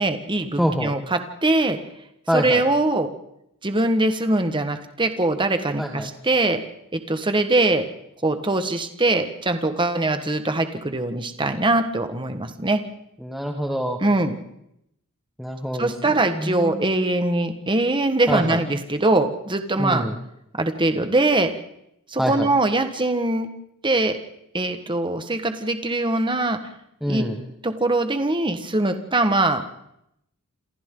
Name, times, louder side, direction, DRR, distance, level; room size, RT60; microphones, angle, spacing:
voice 1, 0.0-1.8 2.3-3.1 3.6-6.6 6.9-7.8 8.2-12.8 14.0-14.4 15.8-20.0 20.5-21.5 22.1-23.5 23.8-24.2 24.5-26.6 27.1-27.2 27.6-29.6, right 2 dB, 20° right, 8 dB, 1.4 m, -22 dB
voice 2, 0.6-0.9 2.3-2.6 5.8-6.1 13.2-14.0 15.4-16.9 18.3-18.6 19.8-20.1 22.2-22.5 27.0-27.4, equal, ahead, 1 dB, 1.6 m, -26 dB
27.5 x 27.0 x 3.9 m, 0.80 s
head